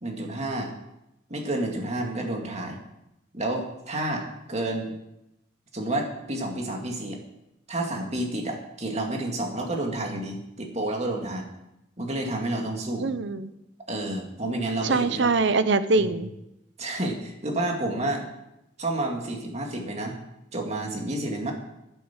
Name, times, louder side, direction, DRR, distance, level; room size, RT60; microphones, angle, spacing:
voice 1, 0.0-0.7 1.3-2.8 3.3-4.9 5.7-7.2 7.7-11.5 12.0-13.1 13.9-15.3 16.0-16.2 16.8-18.3 18.8-20.2 20.5-21.5, right 1 dB, 35° right, 2 dB, 2.1 m, -30 dB
voice 2, 13.0-13.5 14.8-16.3, right 3 dB, 65° right, 12 dB, 0.8 m, -23 dB
10.5 x 9.2 x 7.4 m, 0.88 s
head